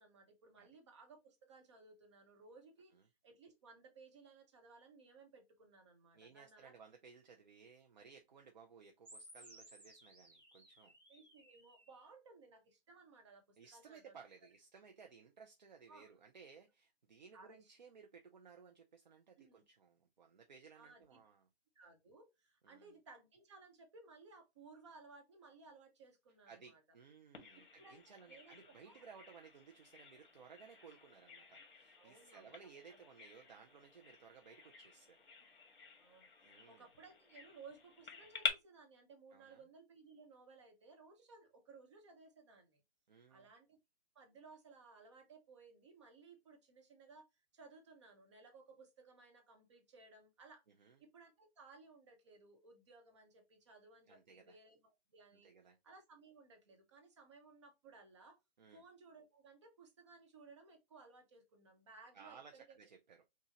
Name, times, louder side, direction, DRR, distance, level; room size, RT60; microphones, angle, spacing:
voice 1, 0.0-6.7 11.1-14.2 15.9-16.1 17.3-17.7 19.4-19.6 20.7-21.2 21.7-26.8 27.5-29.1 32.0-32.5 32.9-33.0 35.4-35.6 36.0-36.3 36.7-42.8 43.3-43.8 44.1-55.5 55.8-58.4 58.7-62.8, right 4 dB, 30° right, 1.1 m, -60 dB
voice 2, 6.1-10.9 13.6-21.4 22.6-22.9 26.5-35.2 36.4-36.8 39.3-39.6 43.1-43.5 50.8-51.0 54.1-54.6 55.3-55.8 58.6-58.8 62.1-63.2, right 6 dB, 45° right, 0.6 m, -59 dB
sound 1, 9.0-12.0, right 1 dB, 5° right, 1.0 m, -60 dB
Bird vocalization bird call bird song, 27.3-38.5, left 6 dB, 55° left, 1.6 m, -48 dB
5.5 x 2.4 x 2.8 m
hypercardioid pair, 165°, 31 cm